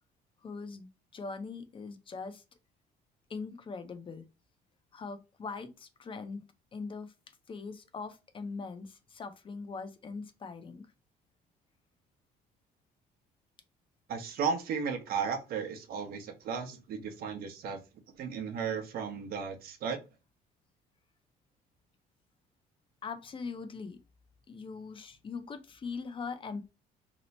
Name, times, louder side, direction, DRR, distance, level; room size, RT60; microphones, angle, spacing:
voice 1, 0.4-2.4 3.3-4.2 4.9-6.4 6.7-7.1 7.5-10.9 23.0-24.0 24.5-26.7, left 4 dB, 30° left, 0.5 m, -41 dB
voice 2, 14.1-17.8 18.2-20.0, right 6 dB, 65° right, 0.8 m, -35 dB
2.9 x 2.0 x 4.0 m
cardioid pair, 110°, 17 cm